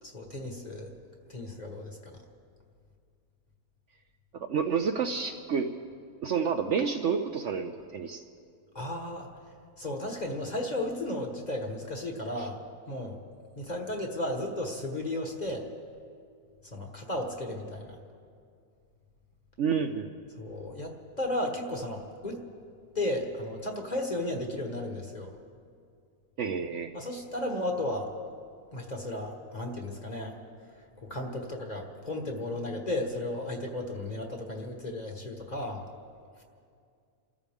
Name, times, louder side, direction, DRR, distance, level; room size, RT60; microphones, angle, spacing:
voice 1, 0.0-0.9 1.3-2.2 8.7-9.3 9.8-12.6 12.9-13.2 13.5-15.7 16.6-17.9 20.4-22.4 22.9-25.3 26.9-28.1 28.7-30.4 31.0-35.8, left 1 dB, 30° left, 2 dB, 1.6 m, -34 dB
voice 2, 4.3-5.7 6.2-8.2 12.4-12.5 19.6-20.1 26.4-26.9, right 6 dB, 60° right, 6 dB, 0.9 m, -29 dB
29.0 x 14.0 x 3.6 m, 2.3 s
omnidirectional pair, 1.6 m